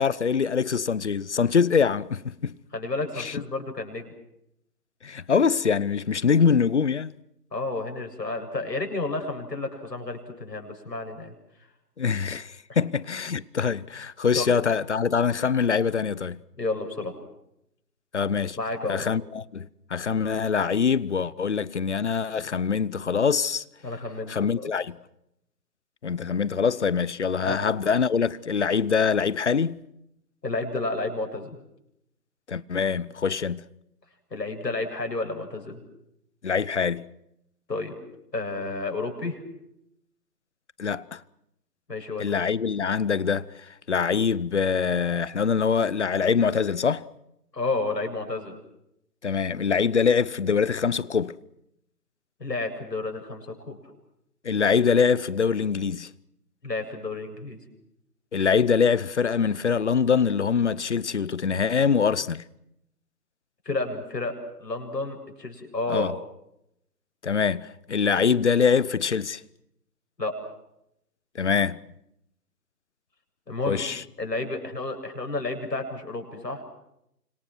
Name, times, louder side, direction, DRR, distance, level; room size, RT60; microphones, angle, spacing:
voice 1, 0.0-2.6 3.2-3.3 5.0-7.1 12.0-16.4 18.1-18.6 18.9-23.6 24.3-25.0 26.0-29.8 32.5-33.6 36.4-37.1 40.8-41.2 42.2-43.5 43.9-47.0 49.2-51.4 54.4-56.1 58.3-62.4 65.9-66.2 67.2-69.4 71.3-71.8 73.7-74.0, left 6 dB, 45° left, 1.0 m, -24 dB
voice 2, 2.7-4.1 7.5-11.3 12.7-12.8 14.3-14.6 16.6-17.1 18.6-19.0 23.8-24.7 27.4-27.6 30.4-31.6 34.3-35.8 37.7-37.9 38.3-39.4 41.9-42.3 47.5-48.6 52.4-53.8 56.6-57.6 63.7-64.3 64.6-66.1 70.2-70.5 73.5-73.8 74.2-76.6, left 2 dB, 80° left, 7.6 m, -31 dB
29.0 x 26.0 x 6.2 m
figure-of-eight pair, 155°, 49 cm